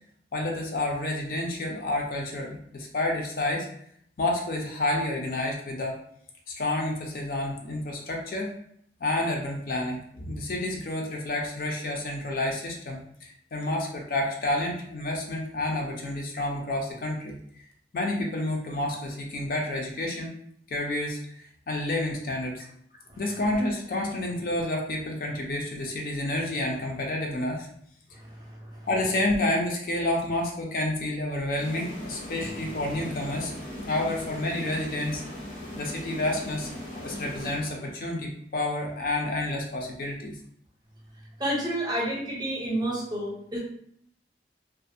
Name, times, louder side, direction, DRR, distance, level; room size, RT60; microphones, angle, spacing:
voice 1, 0.3-3.7 4.2-6.0 6.5-8.5 9.0-17.4 17.9-20.3 20.7-22.6 23.2-27.7 28.9-33.5 33.9-35.2 35.7-40.3, left 1 dB, 50° left, 0 dB, 0.4 m, -29 dB
voice 2, 28.1-28.9 41.4-43.6, right 1 dB, 25° right, -3 dB, 0.6 m, -30 dB
sound 1, 31.6-38.2, left 1 dB, 90° left, 1.0 m, -39 dB
2.4 x 2.1 x 2.5 m, 0.67 s
head